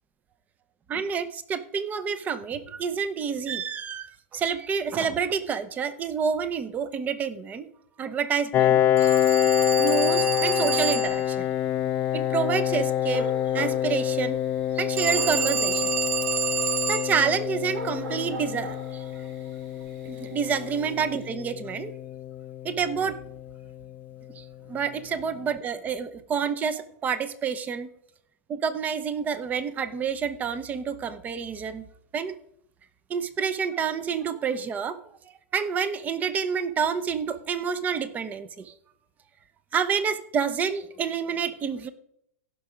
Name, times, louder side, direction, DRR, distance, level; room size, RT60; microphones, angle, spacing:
voice 1, 0.9-7.7 8.0-9.1 9.8-11.5 12.1-13.3 13.5-14.4 14.7-15.9 16.9-19.1 20.0-21.9 22.6-23.2 24.4-27.9 28.5-31.9 32.1-32.4 33.1-35.0 35.5-38.7 39.7-41.9, right 6 dB, 20° right, 13 dB, 0.8 m, -28 dB
Piano, 8.5-23.9, left 11 dB, 25° left, 0.4 m, -26 dB
Telephone, 9.0-11.3 15.0-17.2, right 8 dB, 70° right, 1.1 m, -28 dB
sound 1, 10.8-21.3, right 2 dB, 45° right, 2.7 m, -44 dB
16.0 x 5.9 x 5.1 m, 0.72 s
supercardioid pair, 145°, 8 cm